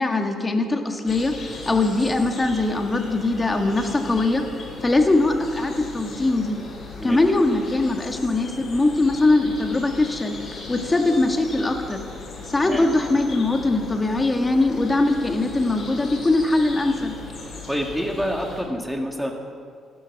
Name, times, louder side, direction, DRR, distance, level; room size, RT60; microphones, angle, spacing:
voice 1, 0.0-4.4 4.8-6.6 7.0-10.3 10.7-12.0 12.5-17.1, left 2 dB, 20° left, 4 dB, 1.8 m, -21 dB
sound 1, 1.0-18.6, left 3 dB, 55° left, 5.0 m, -38 dB
voice 2, 17.7-19.3, equal, ahead, 2 dB, 2.1 m, -27 dB
16.0 x 12.0 x 6.0 m, 2.2 s
cardioid pair, 90°, 0 cm